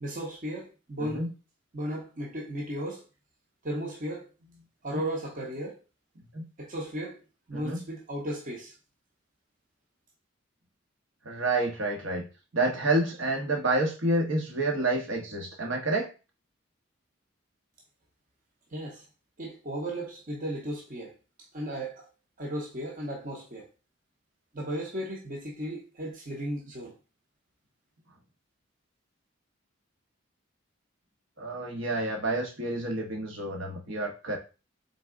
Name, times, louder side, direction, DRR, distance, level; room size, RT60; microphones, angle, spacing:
voice 1, 0.0-1.3 1.7-3.0 3.6-5.8 6.6-7.2 7.5-8.7 18.7-19.1 19.4-22.1 22.4-23.7 24.5-27.0, right 1 dB, 40° right, 0.8 m, -35 dB
voice 2, 11.2-12.2 12.5-16.1 31.4-34.4, right 2 dB, 75° right, 1.2 m, -29 dB
4.0 x 3.5 x 3.7 m
head